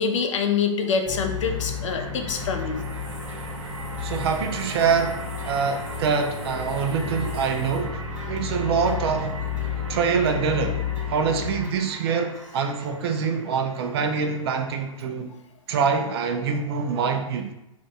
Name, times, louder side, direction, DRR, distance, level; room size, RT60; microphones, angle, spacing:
voice 1, 0.0-2.8, left 6 dB, 65° left, 0.5 m, -25 dB
sound 1, 1.0-11.6, left 6 dB, 10° left, 0.5 m, -32 dB
sound 2, 1.3-15.0, right 2 dB, 80° right, 0.7 m, -41 dB
sound 3, 2.8-7.8, right 2 dB, 30° right, 1.1 m, -49 dB
voice 2, 4.0-8.0 8.3-9.4 9.9-10.8 11.1-15.3 15.7-17.5, right 5 dB, 50° right, 0.4 m, -25 dB
2.6 x 2.6 x 3.4 m
hypercardioid pair, 120°, 17 cm